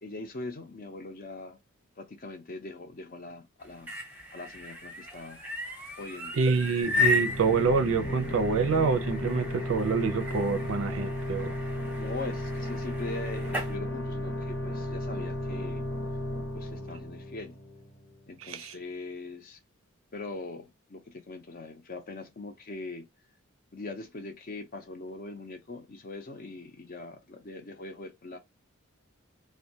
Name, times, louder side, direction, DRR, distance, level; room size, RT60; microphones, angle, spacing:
voice 1, 0.0-1.6 2.0-3.9 4.3-5.4 6.0-6.4 12.0-15.9 16.5-17.6 18.3-19.6 20.1-23.1 23.7-28.4, left 2 dB, 45° left, 0.5 m, -41 dB
sound 1, 3.6-13.7, left 2 dB, 10° right, 0.7 m, -35 dB
voice 2, 6.3-11.5 18.4-18.7, right 4 dB, 70° right, 0.4 m, -27 dB
sound 2, 6.8-18.2, equal, 80° left, 0.9 m, -34 dB
2.2 x 2.2 x 2.7 m
head